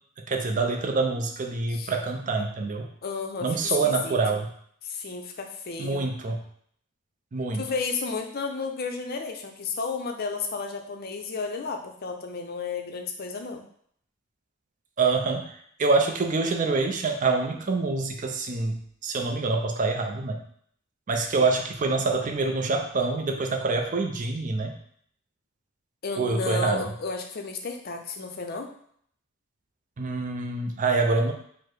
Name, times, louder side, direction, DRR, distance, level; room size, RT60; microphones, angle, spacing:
voice 1, 0.2-2.9 3.4-4.5 5.8-6.4 7.3-7.7 15.0-15.5 15.8-20.4 21.1-24.8 26.2-26.8 30.0-31.3, right 3 dB, 35° right, 3 dB, 0.4 m, -26 dB
voice 2, 3.0-4.4 4.8-6.1 7.5-13.6 26.0-28.7, left 4 dB, 45° left, 4 dB, 0.5 m, -32 dB
4.6 x 2.0 x 4.6 m, 0.64 s
head